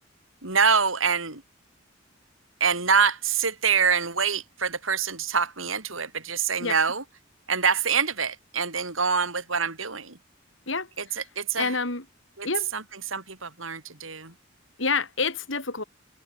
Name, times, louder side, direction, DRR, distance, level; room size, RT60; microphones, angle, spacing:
voice 1, 0.4-1.4 2.6-7.0 7.5-10.2 11.0-11.8 12.4-14.3, right 6 dB, 80° right, 5.7 m, -25 dB
voice 2, 11.6-12.0 12.4-12.7 14.8-15.8, left 4 dB, 70° left, 4.5 m, -27 dB
head